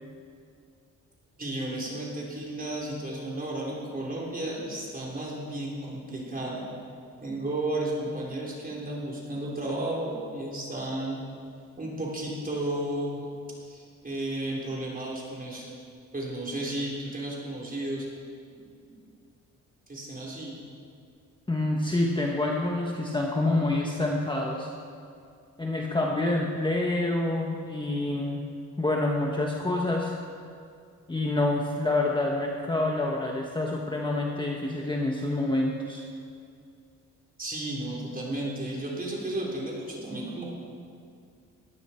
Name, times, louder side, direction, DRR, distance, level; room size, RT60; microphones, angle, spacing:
voice 1, 1.4-6.7 7.2-11.2 11.8-13.2 13.6-15.7 16.1-18.1 18.5-18.6 19.9-20.6 37.4-40.4, right 1 dB, 25° right, -4 dB, 4.2 m, -33 dB
voice 2, 21.5-24.7 25.6-28.4 28.8-30.1 31.1-36.0, left 2 dB, 15° left, -1 dB, 1.5 m, -27 dB
20.0 x 14.5 x 4.6 m, 2.3 s
cardioid pair, 105°, 32 cm